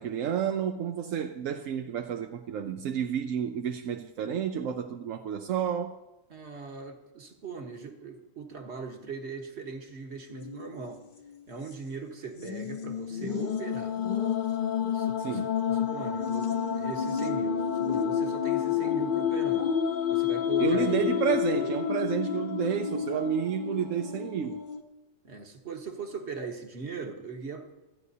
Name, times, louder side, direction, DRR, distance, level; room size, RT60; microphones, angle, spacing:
voice 1, 0.0-6.0 15.2-15.6 20.6-24.6, right 8 dB, 85° right, 1.0 m, -30 dB
voice 2, 6.3-11.0 11.5-13.9 14.9-15.4 15.7-19.7 20.1-21.1 25.2-27.7, right 5 dB, 60° right, 1.7 m, -40 dB
sound 1, 10.3-10.9 11.3-11.4 12.4-24.8, left 8 dB, 40° left, 1.0 m, -29 dB
26.5 x 9.7 x 2.8 m
omnidirectional pair, 1.3 m